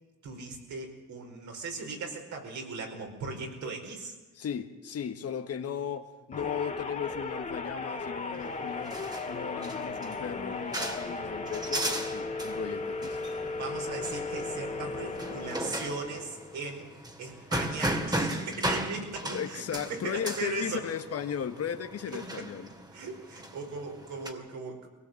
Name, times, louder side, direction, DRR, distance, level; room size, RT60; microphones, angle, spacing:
voice 1, 0.2-4.1 13.6-16.9 17.2-19.6 19.9-20.8 22.1-22.5 22.9-24.9, right 3 dB, 70° right, 2 dB, 5.0 m, -38 dB
voice 2, 4.3-9.0 9.2-13.2 19.3-22.7, left 8 dB, 55° left, 7 dB, 1.5 m, -36 dB
sound 1, 6.3-16.7, left 3 dB, 25° left, 2.5 m, -36 dB
sound 2, 8.3-24.3, right 1 dB, 15° right, 2.3 m, -37 dB
22.0 x 18.0 x 7.8 m, 1.1 s
cardioid pair, 90°, 30 cm